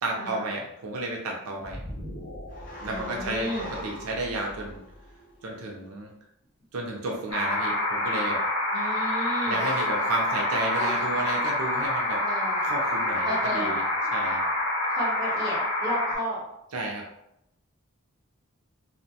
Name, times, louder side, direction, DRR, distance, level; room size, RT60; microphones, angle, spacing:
voice 1, 0.0-1.8 2.8-4.8 5.4-6.1 6.7-8.4 9.4-12.2 12.6-13.8 14.1-14.4 16.7-17.0, right 2 dB, 80° right, -1 dB, 0.5 m, -32 dB
sound 1, 1.6-6.0, equal, 40° left, 0.6 m, -41 dB
voice 2, 2.8-3.6 8.7-9.6 12.2-12.6 13.2-13.7 14.9-16.4, equal, 20° right, -7 dB, 0.9 m, -33 dB
sound 2, 7.3-16.2, left 1 dB, 75° left, 0.7 m, -27 dB
sound 3, 9.6-10.4 10.7-13.4 13.8-14.6, right 1 dB, 50° right, 0.8 m, -43 dB
2.5 x 2.1 x 2.7 m, 0.81 s
head